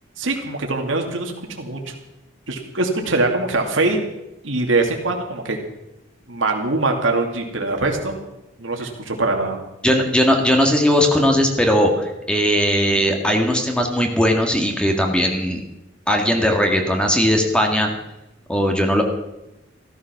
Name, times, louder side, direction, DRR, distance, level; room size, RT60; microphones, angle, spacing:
voice 1, 0.2-1.9 2.5-4.0 4.4-5.6 6.3-8.2 8.6-9.6, right 2 dB, 85° right, 2 dB, 2.4 m, -22 dB
voice 2, 9.8-15.6 16.1-17.9 18.5-19.0, equal, 5° left, 3 dB, 1.8 m, -18 dB
15.5 x 13.0 x 6.0 m, 0.94 s
head